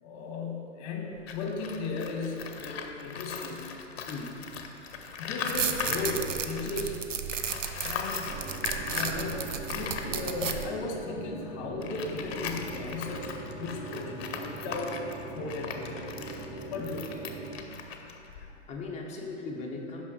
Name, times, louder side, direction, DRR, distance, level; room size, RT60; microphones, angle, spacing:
voice 1, 0.0-3.7 5.2-7.0 7.8-8.4 8.9-15.0 15.3-16.1 16.7-17.2, left 3 dB, 40° left, 1 dB, 1.4 m, -36 dB
Tools, 1.2-7.0 7.3-18.7, left 6 dB, 55° left, 0.8 m, -39 dB
sound 1, 5.5-10.7, right 7 dB, 85° right, 0.6 m, -34 dB
sound 2, 8.3-17.6, right 3 dB, 20° right, 0.5 m, -41 dB
voice 2, 18.3-20.0, left 3 dB, 20° left, -1 dB, 0.9 m, -39 dB
6.1 x 5.4 x 5.6 m, 2.9 s
figure-of-eight pair, 110°, 37 cm